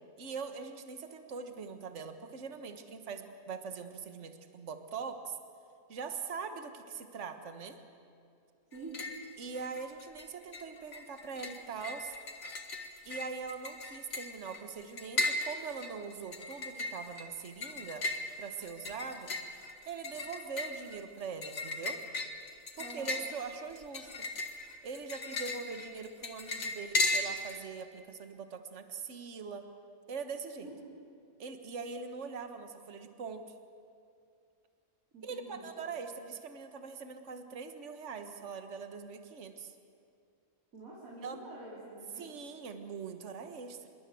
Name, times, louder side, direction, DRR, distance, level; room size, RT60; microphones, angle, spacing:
voice 1, 0.2-5.4 5.9-7.8 9.4-12.2 13.0-18.1 18.4-19.3 19.8-22.0 22.8-24.3 24.8-29.7 30.1-30.7 31.4-33.5 35.2-39.7 41.2-41.4 42.2-43.9, right 5 dB, 55° right, 7 dB, 1.7 m, -42 dB
sound 1, 8.7-9.2 9.5-10.2 10.5-27.6, left 2 dB, 70° left, 2.1 m, -37 dB
voice 2, 8.7-9.1 22.8-23.2 30.6-31.0 35.1-35.7 40.7-42.3, right 2 dB, 75° right, -6 dB, 4.6 m, -47 dB
26.0 x 23.0 x 7.7 m, 2.4 s
omnidirectional pair, 1.5 m